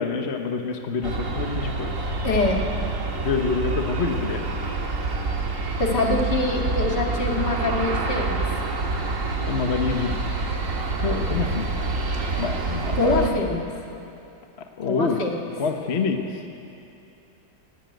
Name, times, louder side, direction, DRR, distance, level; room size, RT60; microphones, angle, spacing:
voice 1, 0.0-2.2 3.2-4.5 9.4-10.1 11.0-11.7 12.4-13.4 14.6-15.2 15.6-16.4, left 5 dB, 40° left, 4 dB, 1.3 m, -27 dB
Aircraft, 1.0-13.3, right 3 dB, 50° right, 2.0 m, -27 dB
voice 2, 2.2-2.6 5.8-8.4 13.0-13.6 14.8-15.4, left 2 dB, 70° left, 0 dB, 2.8 m, -24 dB
18.5 x 17.0 x 9.3 m, 2.8 s
omnidirectional pair, 1.9 m